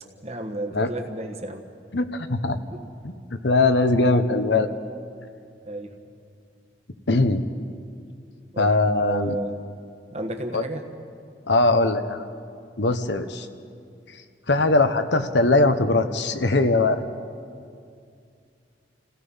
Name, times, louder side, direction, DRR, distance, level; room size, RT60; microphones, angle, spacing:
voice 1, 0.2-1.7 2.7-2.8 5.6-5.9 8.5-8.7 9.0-9.5 10.1-10.8, right 1 dB, 35° right, 5 dB, 1.4 m, -32 dB
voice 2, 1.9-2.6 3.0-3.1 3.4-4.7 7.1-7.4 8.6-9.4 10.5-10.6 11.5-12.2 12.8-13.5 14.5-17.0, left 2 dB, 75° left, 9 dB, 1.0 m, -20 dB
28.0 x 16.5 x 5.6 m, 2.3 s
head